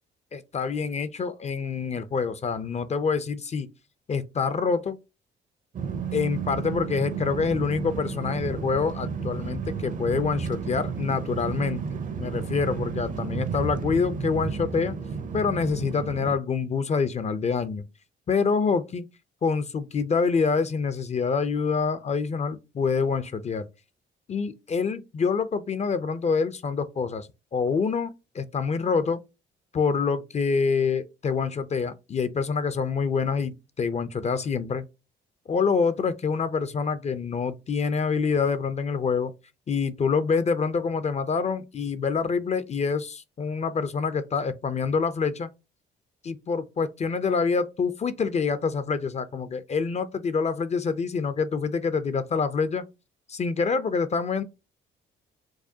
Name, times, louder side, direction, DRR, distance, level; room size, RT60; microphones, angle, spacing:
voice 1, 0.3-3.7 4.1-5.0 6.1-11.8 12.2-15.0 15.3-17.8 18.3-19.1 19.4-23.7 24.3-29.2 29.7-34.8 35.5-39.3 39.7-45.5 46.2-52.8 53.3-54.4, left 5 dB, 35° left, 0.4 m, -26 dB
sound 1, 5.7-16.4, right 6 dB, 40° right, 0.5 m, -32 dB
4.7 x 2.1 x 2.7 m
cardioid pair, 90°, 20 cm